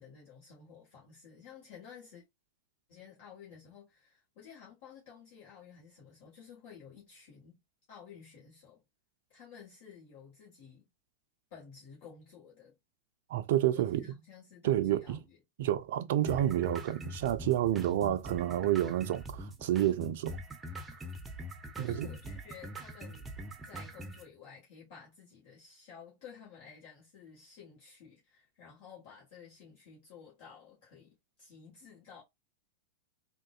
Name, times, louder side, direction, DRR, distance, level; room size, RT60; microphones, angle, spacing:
voice 1, 0.0-2.2 2.9-7.6 7.9-8.8 9.3-10.9 11.5-12.8 13.7-15.4 21.8-23.3 23.6-32.2, left 7 dB, 55° left, 1.6 m, -53 dB
voice 2, 13.3-14.0 14.6-15.2 15.6-20.4 21.8-22.1, right 12 dB, 60° right, 0.4 m, -29 dB
sound 1, 16.3-24.3, equal, 15° right, 0.7 m, -43 dB
3.6 x 2.5 x 2.3 m
figure-of-eight pair, 95°, 0 cm